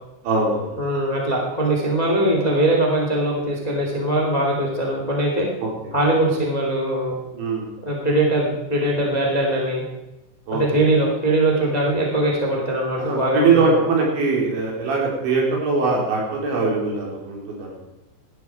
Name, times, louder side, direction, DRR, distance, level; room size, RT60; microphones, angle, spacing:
voice 1, 0.2-0.8 2.2-2.3 5.6-5.7 7.3-7.7 10.5-10.8 13.0-17.8, right 4 dB, 65° right, -2 dB, 5.9 m, -22 dB
voice 2, 0.8-5.5 5.9-7.1 7.8-9.8 10.5-13.8, right 1 dB, 20° left, -1 dB, 1.0 m, -21 dB
18.0 x 12.5 x 4.7 m, 0.95 s
omnidirectional pair, 5.7 m